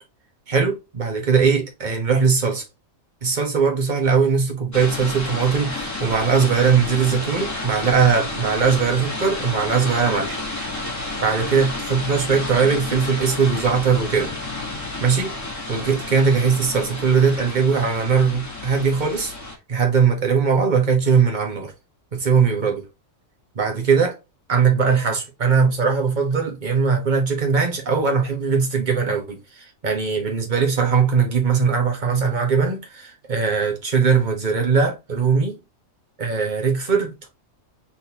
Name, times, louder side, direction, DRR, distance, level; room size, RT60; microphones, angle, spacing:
voice 1, 0.5-2.6 3.2-10.4 11.2-14.3 15.0-15.3 15.7-19.3 19.7-21.7 22.1-22.8 23.5-24.2 24.5-35.6 36.2-37.2, right 5 dB, 35° right, 1.5 m, -20 dB
sound 1, 4.7-19.5, left 2 dB, 15° left, 1.5 m, -31 dB
4.3 x 3.8 x 2.9 m
omnidirectional pair, 1.4 m